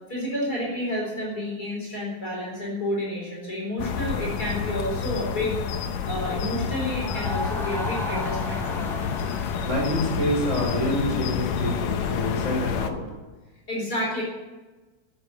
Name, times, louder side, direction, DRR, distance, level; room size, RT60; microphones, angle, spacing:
voice 1, 0.1-5.6 6.0-9.0 13.7-14.2, left 1 dB, 30° left, -4 dB, 4.8 m, -30 dB
sound 1, 3.8-12.9, left 7 dB, 70° left, 2.2 m, -29 dB
sound 2, 6.7-11.5, equal, ahead, 0.8 m, -36 dB
voice 2, 9.6-13.0, left 1 dB, 20° right, -3 dB, 5.1 m, -27 dB
13.0 x 8.9 x 9.7 m, 1.2 s
omnidirectional pair, 3.5 m